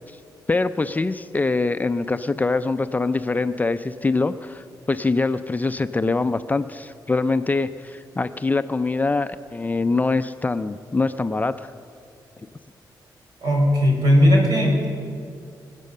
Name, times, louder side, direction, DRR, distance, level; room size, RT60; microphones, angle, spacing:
voice 1, 0.5-11.7, left 3 dB, 20° left, 10 dB, 0.5 m, -24 dB
voice 2, 13.4-14.8, left 1 dB, 65° right, 0 dB, 4.7 m, -17 dB
23.5 x 8.3 x 6.6 m, 2.3 s
cardioid pair, 90°, 8 cm